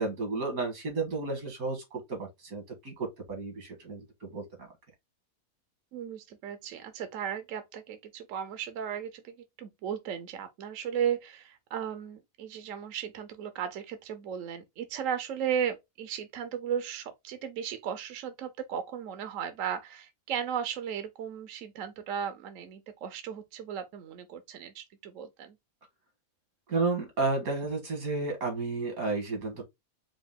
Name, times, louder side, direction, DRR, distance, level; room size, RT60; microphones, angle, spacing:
voice 1, 0.0-4.7 26.7-29.6, right 3 dB, 85° right, 2.0 m, -32 dB
voice 2, 5.9-25.6, right 8 dB, 70° right, 1.0 m, -35 dB
4.9 x 2.4 x 3.5 m
omnidirectional pair, 1.5 m